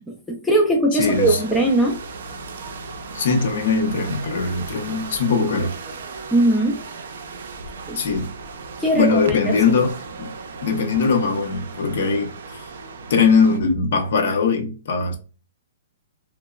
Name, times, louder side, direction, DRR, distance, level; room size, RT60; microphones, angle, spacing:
voice 1, 0.3-2.0 6.3-6.8 7.9-8.0 8.8-9.5, right 1 dB, 5° left, 0.3 m, -19 dB
voice 2, 0.9-1.4 3.1-5.7 7.9-8.3 8.9-10.3 10.6-12.6 13.1-15.1, left 4 dB, 60° left, 0.6 m, -21 dB
sound 1, 1.0-13.6, right 4 dB, 65° right, 0.4 m, -36 dB
2.9 x 2.0 x 2.2 m
hypercardioid pair, 165°, 0 cm